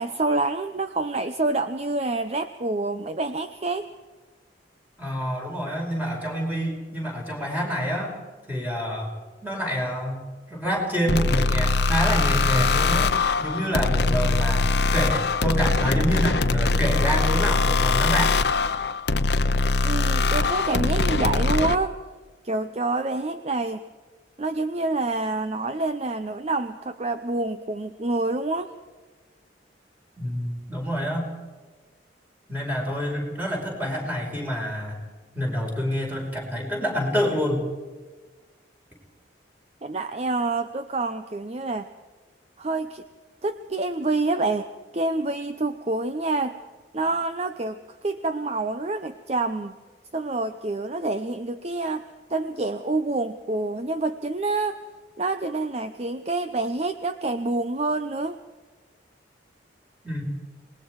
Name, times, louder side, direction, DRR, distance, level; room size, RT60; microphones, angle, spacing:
voice 1, 0.0-3.9 19.8-21.9 22.4-23.8 24.4-28.7 39.8-41.9 42.6-43.0 43.4-46.6 46.9-49.7 50.1-54.8 55.2-58.4, right 2 dB, 35° right, 10 dB, 0.7 m, -27 dB
voice 2, 5.0-8.2 8.5-13.1 13.4-18.4 30.2-31.3 32.5-35.0 35.3-37.6 60.0-60.2, equal, 10° right, -1 dB, 5.2 m, -27 dB
sound 1, 11.1-21.8, left 3 dB, 60° left, 0.8 m, -22 dB
26.5 x 20.0 x 4.8 m, 1.3 s
head